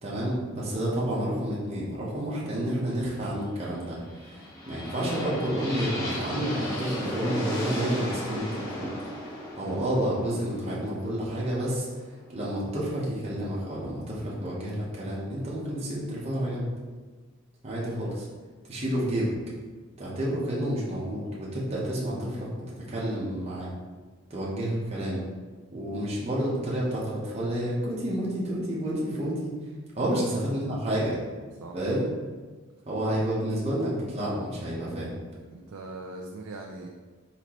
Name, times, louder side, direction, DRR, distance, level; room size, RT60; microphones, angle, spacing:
voice 1, 0.0-4.0 4.2-8.9 9.5-11.9 12.3-16.7 17.6-18.3 18.7-19.3 20.0-22.5 22.9-23.7 24.3-25.3 25.7-29.5 29.9-31.2 31.7-32.0 32.8-35.1, right 1 dB, 30° right, -7 dB, 0.9 m, -30 dB
sound 1, 4.0-11.9, equal, 15° left, 1.2 m, -35 dB
voice 2, 35.5-36.9, right 2 dB, 85° right, 0 dB, 0.4 m, -40 dB
4.3 x 4.0 x 3.0 m, 1.4 s
head